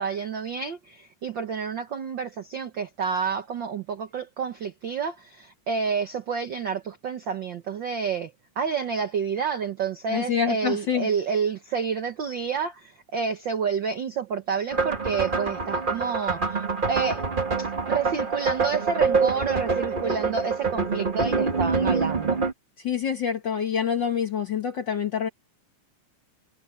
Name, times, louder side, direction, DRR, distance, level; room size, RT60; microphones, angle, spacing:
voice 1, 0.0-17.2 17.6-22.4, right 6 dB, 65° right, 1.2 m, -29 dB
voice 2, 10.1-11.1 22.8-25.3, left 8 dB, 50° left, 1.5 m, -26 dB
sound 1, 14.7-22.5, right 4 dB, 45° right, 0.6 m, -26 dB
omnidirectional pair, 3.5 m